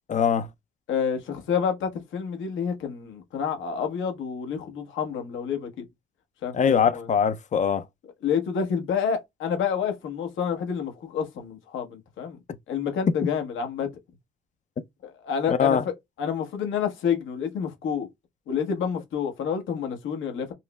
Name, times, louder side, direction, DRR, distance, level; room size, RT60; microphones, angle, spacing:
voice 1, 0.1-0.5 6.5-7.8 15.5-15.8, left 7 dB, 40° left, 0.5 m, -22 dB
voice 2, 0.9-5.8 6.4-7.1 8.2-12.4 12.7-13.9 15.0-15.9 16.2-18.1 18.5-20.5, left 7 dB, 75° left, 1.0 m, -28 dB
5.2 x 2.0 x 2.2 m
cardioid pair, 90°, 20 cm